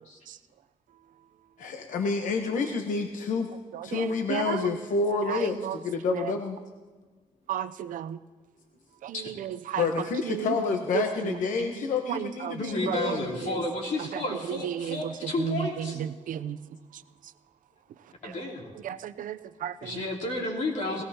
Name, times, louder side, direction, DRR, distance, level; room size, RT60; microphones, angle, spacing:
voice 1, 1.6-3.5 3.8-6.6 9.8-13.3, left 4 dB, 80° left, 3 dB, 1.0 m, -29 dB
voice 2, 3.7-4.7 5.3-5.8 6.1-6.3 7.5-8.2 9.0-9.9 10.2-10.5 10.9-11.4 11.8-12.6 12.9-13.2 13.4-13.6 14.1-14.2 14.5-16.6 18.2-18.3 18.8-20.0, right 10 dB, 85° right, 13 dB, 0.5 m, -33 dB
voice 3, 12.6-16.0 18.2-18.7 19.8-21.0, left 2 dB, 65° left, -2 dB, 3.0 m, -32 dB
19.0 x 17.0 x 2.8 m, 1.3 s
wide cardioid pair, 155°, 13 cm